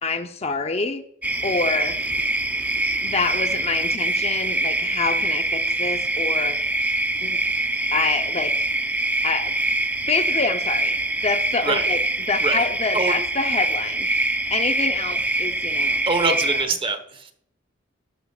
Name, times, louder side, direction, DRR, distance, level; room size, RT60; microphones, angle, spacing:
voice 1, 0.0-1.0 1.4-2.0 3.0-6.6 7.2-7.4 7.9-8.5 9.2-9.6 10.1-11.0 11.2-12.0 12.3-14.1 14.5-16.0 16.5-16.6, left 4 dB, 35° left, 7 dB, 0.8 m, -27 dB
sound 1, 1.2-16.6, right 2 dB, 10° right, 0.6 m, -24 dB
voice 2, 16.1-17.3, right 3 dB, 30° right, 9 dB, 1.2 m, -24 dB
13.0 x 11.0 x 2.4 m, 0.67 s
head